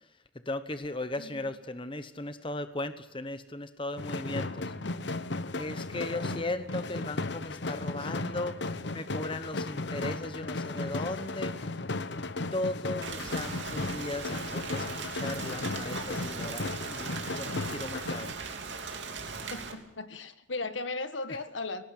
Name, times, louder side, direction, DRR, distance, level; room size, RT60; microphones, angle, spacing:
voice 1, 0.5-4.7 5.5-11.5 12.2-12.3 12.5-14.9 15.1-18.3, left 2 dB, 25° left, 11 dB, 1.1 m, -37 dB
voice 2, 1.2-1.5 19.5-21.8, left 3 dB, 80° left, 10 dB, 1.7 m, -37 dB
sound 1, 4.0-18.3, left 2 dB, 65° left, 0.9 m, -35 dB
Rain, 13.0-19.7, right 5 dB, 70° right, 3.1 m, -39 dB
19.0 x 18.5 x 8.3 m, 0.87 s
head